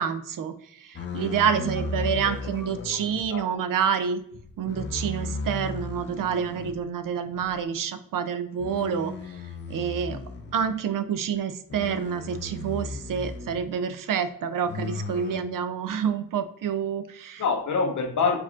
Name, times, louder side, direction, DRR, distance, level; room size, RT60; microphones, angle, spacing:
voice 1, 0.0-4.2 4.6-9.1 9.7-10.2 10.5-17.4, right 7 dB, 75° right, 11 dB, 0.5 m, -28 dB
sound 1, 0.9-3.3 4.3-6.8 7.2-7.5 8.6-10.7 11.7-13.7 14.6-15.4, left 3 dB, 35° left, 0.5 m, -35 dB
voice 2, 1.1-1.7 2.1-2.5 2.7-3.5 17.4-18.4, left 5 dB, 60° left, 5 dB, 0.8 m, -28 dB
4.7 x 3.6 x 2.4 m, 0.68 s
cardioid pair, 105°, 33 cm